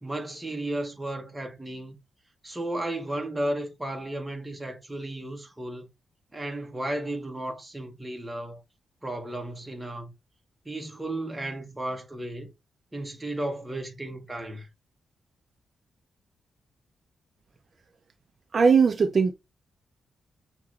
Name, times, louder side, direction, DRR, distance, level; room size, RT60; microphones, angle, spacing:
voice 1, 0.0-2.0 2.4-5.9 6.3-8.6 9.0-10.1 10.7-12.5 12.9-14.7, right 1 dB, 10° right, 0.9 m, -34 dB
voice 2, 18.5-19.3, right 5 dB, 40° right, 0.4 m, -19 dB
6.0 x 2.9 x 2.4 m
cardioid pair, 120°, 0 cm